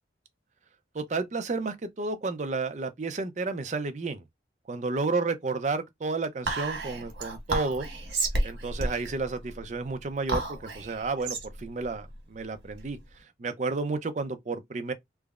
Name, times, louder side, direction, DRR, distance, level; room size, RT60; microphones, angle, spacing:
voice 1, 0.9-4.2 4.7-7.9 8.4-13.0 13.4-14.9, right 3 dB, 40° right, 0.5 m, -31 dB
Whispering, 6.5-13.1, right 2 dB, 90° right, 1.2 m, -32 dB
3.3 x 2.0 x 2.3 m
head